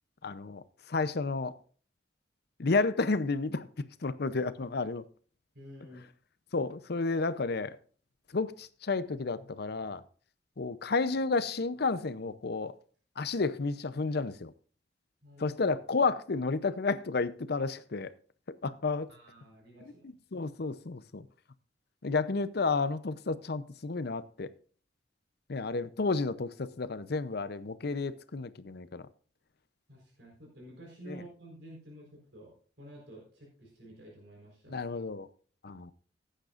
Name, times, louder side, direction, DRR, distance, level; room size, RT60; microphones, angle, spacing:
voice 1, 0.2-1.5 2.6-3.7 4.0-5.0 6.5-7.8 8.3-10.0 10.6-12.7 13.2-14.5 15.4-18.1 18.6-19.1 20.0-21.3 22.0-24.5 25.5-29.0 31.1-31.2 34.7-35.3 35.6-35.9, left 3 dB, 60° left, 0.6 m, -31 dB
voice 2, 5.5-6.0 15.2-15.6 19.1-20.2 29.9-34.8, right 1 dB, 70° right, 4.3 m, -51 dB
16.5 x 8.9 x 2.5 m
head